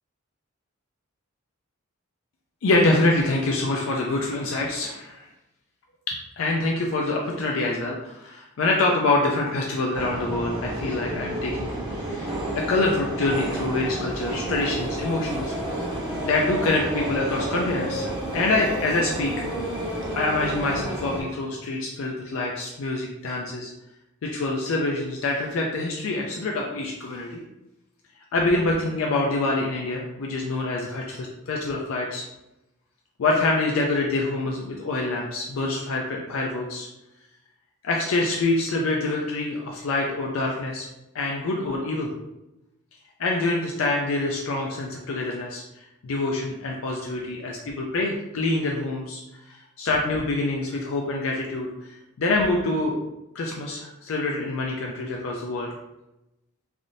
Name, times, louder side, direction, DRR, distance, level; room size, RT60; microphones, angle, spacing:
voice 1, 2.6-5.3 6.1-11.7 12.0-15.5 15.8-15.9 16.2-19.3 20.2-23.7 24.2-27.4 28.3-32.2 33.2-36.9 37.8-40.9 41.1-42.1 43.2-49.2 49.5-53.0 53.3-55.7, left 2 dB, 70° left, -1 dB, 0.4 m, -26 dB
sound 1, 9.9-21.2, right 1 dB, 20° right, 0.6 m, -30 dB
3.3 x 2.5 x 2.6 m, 0.94 s
head